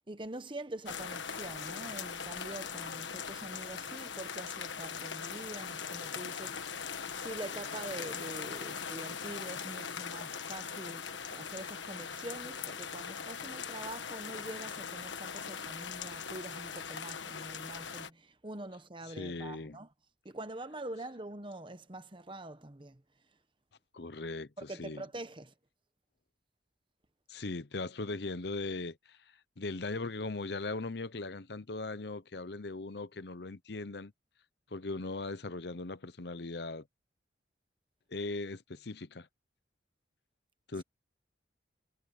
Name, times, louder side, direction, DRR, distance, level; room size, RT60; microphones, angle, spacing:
voice 1, 0.1-19.9 20.2-23.0 24.6-25.5, right 1 dB, 25° right, 1.1 m, -45 dB
sound 1, 0.9-18.1, left 6 dB, 80° left, 1.4 m, -40 dB
voice 2, 19.1-19.8 23.9-25.0 27.3-29.2 29.6-34.1 34.7-36.9 38.1-39.3 40.7-40.8, left 3 dB, 60° left, 0.8 m, -39 dB
head